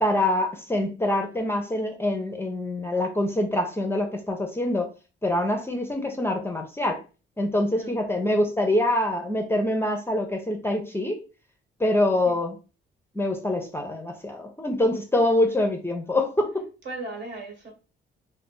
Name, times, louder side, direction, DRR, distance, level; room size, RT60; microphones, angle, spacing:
voice 1, 0.0-4.9 5.2-7.0 7.4-11.2 11.8-12.5 13.1-16.7, left 1 dB, 10° left, 0.5 m, -25 dB
voice 2, 16.8-17.7, right 2 dB, 60° right, 1.3 m, -36 dB
2.5 x 2.1 x 3.7 m
cardioid pair, 90°, 20 cm